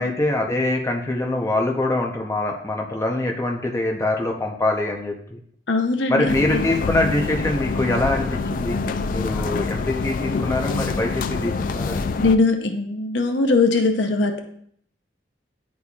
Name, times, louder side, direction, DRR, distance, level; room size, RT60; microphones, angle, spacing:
voice 1, 0.0-5.4 6.1-8.8 9.1-12.1, left 2 dB, 15° left, 1 dB, 0.6 m, -24 dB
voice 2, 5.7-6.6 12.2-14.4, left 3 dB, 75° left, 5 dB, 0.7 m, -20 dB
sound 1, 6.3-12.4, left 4 dB, 50° left, 0.3 m, -26 dB
9.8 x 4.1 x 2.4 m, 0.64 s
head